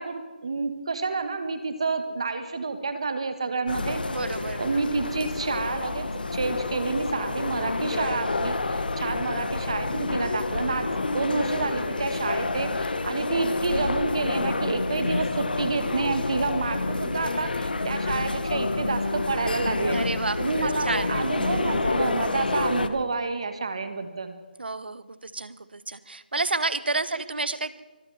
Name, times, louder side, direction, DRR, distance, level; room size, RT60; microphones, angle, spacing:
voice 1, 0.0-4.0 4.6-6.1 6.3-20.0 20.4-24.4 27.1-27.2, right 4 dB, 35° right, 9 dB, 1.6 m, -29 dB
sound 1, 3.7-22.9, left 3 dB, 60° left, 1.3 m, -28 dB
voice 2, 4.1-4.6 19.9-21.2 24.6-27.8, right 3 dB, 75° right, 15 dB, 1.2 m, -30 dB
24.0 x 8.3 x 7.2 m, 1.2 s
figure-of-eight pair, 175°, 6 cm